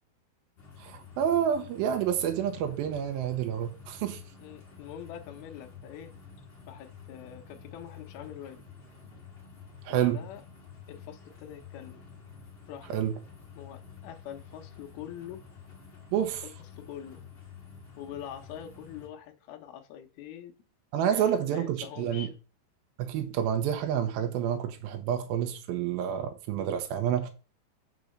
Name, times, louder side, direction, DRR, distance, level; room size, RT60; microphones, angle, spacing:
sound 1, 0.6-19.1, left 6 dB, 35° left, 1.0 m, -50 dB
voice 1, 0.8-4.2 9.9-10.2 12.9-13.1 16.1-16.4 20.9-22.3 23.0-27.3, right 9 dB, 80° right, 2.2 m, -29 dB
voice 2, 4.4-6.1 6.7-8.6 9.9-10.4 10.9-12.0 12.7-13.0 13.6-15.4 16.1-17.2 18.0-20.5 21.1-22.3, left 10 dB, 75° left, 2.3 m, -44 dB
6.4 x 4.0 x 6.3 m
omnidirectional pair, 5.1 m